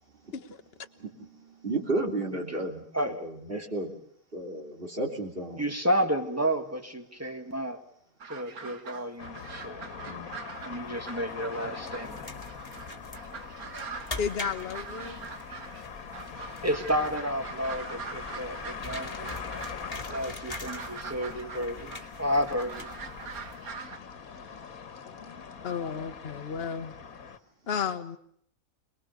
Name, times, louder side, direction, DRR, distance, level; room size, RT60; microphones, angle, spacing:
voice 1, 1.0-3.9 4.3-5.6 10.1-10.3, right 2 dB, 40° right, -2 dB, 3.5 m, -33 dB
voice 2, 2.9-3.3 3.5-3.6 5.6-7.8 8.3-9.9 10.6-12.3 16.6-19.3 20.1-22.9, equal, 10° right, 6 dB, 1.9 m, -31 dB
sound 1, 8.2-24.0, right 5 dB, 85° right, 2.0 m, -43 dB
sound 2, 9.2-27.4, left 6 dB, 75° left, 1.9 m, -42 dB
sound 3, 11.8-23.8, left 2 dB, 25° left, 2.4 m, -44 dB
voice 3, 14.2-15.2 25.0-26.9 27.7-28.2, left 7 dB, 45° left, 9 dB, 1.3 m, -33 dB
28.0 x 20.5 x 6.8 m, 0.67 s
omnidirectional pair, 1.5 m